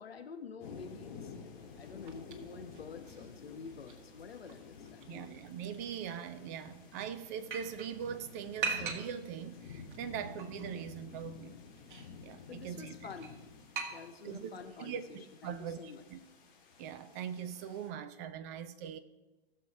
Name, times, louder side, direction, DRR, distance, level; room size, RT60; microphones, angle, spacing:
voice 1, 0.0-1.3 1.8-5.4 12.5-13.4 13.9-16.0, left 5 dB, 65° left, 1.3 m, -48 dB
sound 1, 0.6-17.9, left 5 dB, 45° left, 2.6 m, -52 dB
sound 2, 1.6-14.6, right 5 dB, 45° right, 1.7 m, -45 dB
voice 2, 5.1-11.6 12.2-12.9 14.2-14.5 14.8-16.2 16.8-19.0, right 8 dB, 15° right, 0.4 m, -41 dB
18.0 x 6.9 x 3.7 m
figure-of-eight pair, 120°, 33 cm